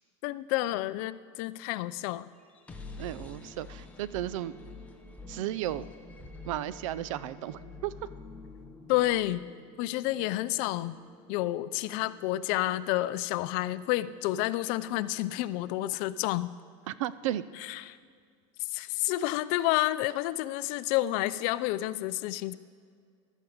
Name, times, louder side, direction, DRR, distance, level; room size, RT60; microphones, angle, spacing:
voice 1, 0.2-2.3 8.9-9.4 9.8-11.0 11.3-16.5 17.6-18.0 18.6-22.6, left 16 dB, 55° left, 16 dB, 0.5 m, -30 dB
sound 1, 2.4-16.2, left 3 dB, 10° left, 1.1 m, -49 dB
voice 2, 3.0-4.5 5.3-5.8 6.4-7.9 16.9-17.4, right 13 dB, 80° right, 17 dB, 0.5 m, -34 dB
14.0 x 12.5 x 5.0 m, 2.1 s
supercardioid pair, 135°, 16 cm